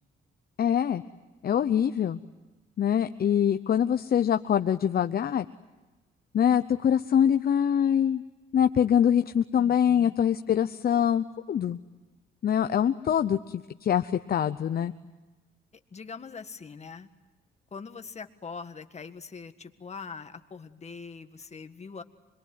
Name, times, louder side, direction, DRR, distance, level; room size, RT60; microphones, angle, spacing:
voice 1, 0.6-1.0 1.4-2.2 2.8-5.5 6.3-8.2 8.5-11.8 12.4-13.4 13.8-14.9, left 9 dB, 50° left, 9 dB, 0.8 m, -24 dB
voice 2, 9.6-10.2 15.9-17.1 17.7-22.0, left 5 dB, 35° left, 8 dB, 1.7 m, -42 dB
26.5 x 22.0 x 9.6 m, 1.2 s
cardioid pair, 90°, 20 cm